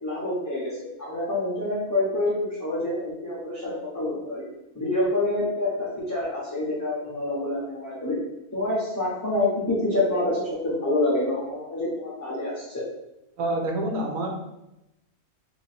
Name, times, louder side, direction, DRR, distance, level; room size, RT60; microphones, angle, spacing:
voice 1, 0.0-2.3 2.6-4.4 4.7-5.7 6.1-8.2 8.5-12.8, left 2 dB, 15° left, -8 dB, 0.8 m, -27 dB
voice 2, 13.4-14.3, right 1 dB, 70° right, 2 dB, 1.1 m, -27 dB
3.0 x 2.7 x 4.2 m, 0.91 s
omnidirectional pair, 1.6 m